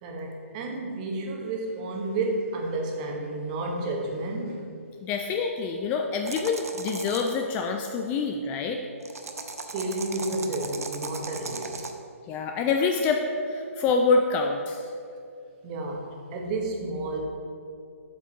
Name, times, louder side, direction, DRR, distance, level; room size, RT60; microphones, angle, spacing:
voice 1, 0.0-4.6 9.7-11.9 15.6-17.3, right 2 dB, 30° right, 1 dB, 1.1 m, -31 dB
voice 2, 5.0-8.8 12.3-14.9, left 4 dB, 20° left, 3 dB, 0.4 m, -26 dB
sound 1, 6.3-7.3 9.0-11.9, right 4 dB, 80° right, 0.7 m, -37 dB
7.8 x 5.6 x 3.9 m, 2.4 s
hypercardioid pair, 140°, 8 cm